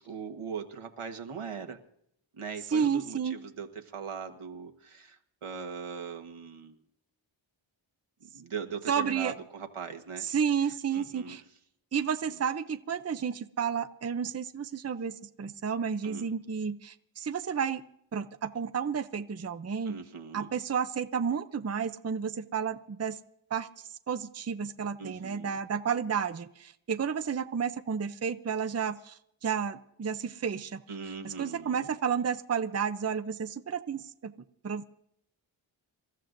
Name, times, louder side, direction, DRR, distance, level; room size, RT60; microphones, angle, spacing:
voice 1, 0.0-1.8 2.4-6.8 8.2-10.3 10.6-11.4 12.3-12.4 16.0-16.3 19.8-20.5 25.0-25.6 30.9-31.9, right 6 dB, 85° right, 5 dB, 1.5 m, -40 dB
voice 2, 2.7-3.4 8.9-9.3 10.2-11.4 11.9-17.8 18.1-20.0 20.3-23.2 23.5-23.7 24.1-30.8 31.2-34.3 34.6-34.8, right 7 dB, 30° right, 10 dB, 0.6 m, -31 dB
27.5 x 14.0 x 2.6 m, 0.72 s
wide cardioid pair, 80°, 49 cm